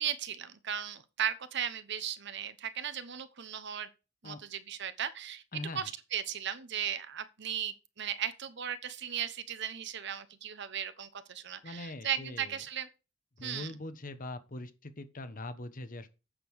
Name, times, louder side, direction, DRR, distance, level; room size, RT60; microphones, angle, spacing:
voice 1, 0.0-3.9 4.2-5.4 5.7-12.9 13.4-13.7, right 9 dB, 60° right, 1.0 m, -36 dB
voice 2, 11.6-12.6 13.4-16.1, left 2 dB, 45° left, 1.1 m, -42 dB
8.8 x 6.8 x 4.8 m
head